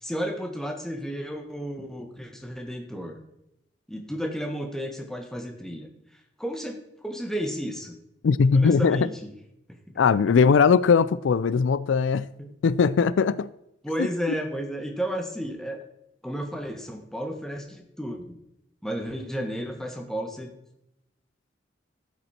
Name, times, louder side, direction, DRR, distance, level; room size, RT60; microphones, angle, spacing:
voice 1, 0.0-3.2 3.9-5.9 6.4-7.9 8.5-9.3 10.4-10.5 12.4-12.5 13.8-15.8 16.2-18.2 18.8-20.5, equal, 5° left, 1.4 m, -32 dB
voice 2, 8.2-9.1 10.0-12.3 12.6-13.5 14.0-14.1, left 5 dB, 80° left, 0.4 m, -20 dB
14.0 x 8.1 x 4.4 m
head